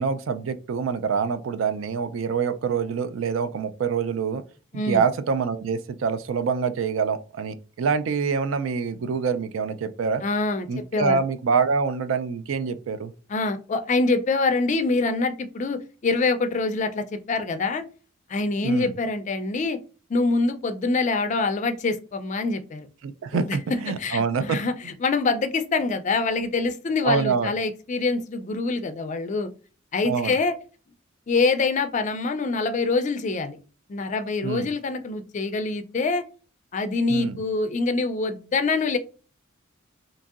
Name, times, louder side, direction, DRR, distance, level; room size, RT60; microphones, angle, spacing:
voice 1, 0.0-4.4 4.7-10.2 10.7-13.1 18.6-18.9 23.0-24.6 27.0-27.5 30.0-30.3 34.4-34.7 37.1-37.4, right 5 dB, 70° right, 0.3 m, -26 dB
voice 2, 10.2-11.2 13.3-17.8 18.3-19.8 20.1-22.9 23.3-24.7 25.0-29.5 29.9-30.6 31.3-33.6 33.9-36.2 36.7-39.0, left 3 dB, 35° left, 0.3 m, -25 dB
2.9 x 2.6 x 2.4 m
head